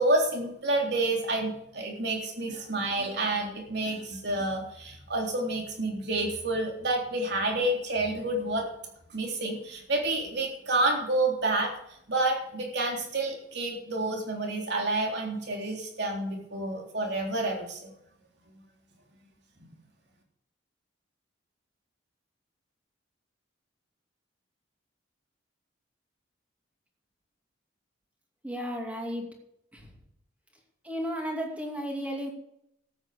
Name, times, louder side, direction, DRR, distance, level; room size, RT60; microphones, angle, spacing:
voice 1, 0.0-8.7 9.1-11.7 12.1-17.9, right 2 dB, 60° right, 1 dB, 3.6 m, -29 dB
voice 2, 28.4-29.3 29.7-29.9 30.8-32.3, equal, 5° right, 0 dB, 2.5 m, -34 dB
13.0 x 9.0 x 6.7 m, 0.75 s
head